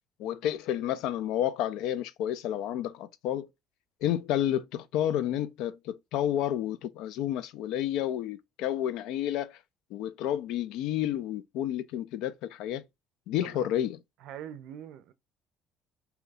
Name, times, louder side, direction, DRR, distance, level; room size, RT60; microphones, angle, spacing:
voice 1, 0.2-3.5 4.0-9.6 9.9-12.8 13.3-14.0, left 11 dB, 70° left, 0.4 m, -30 dB
voice 2, 14.2-15.1, right 10 dB, 60° right, 0.5 m, -43 dB
2.8 x 2.3 x 4.0 m
cardioid pair, 175°, 0 cm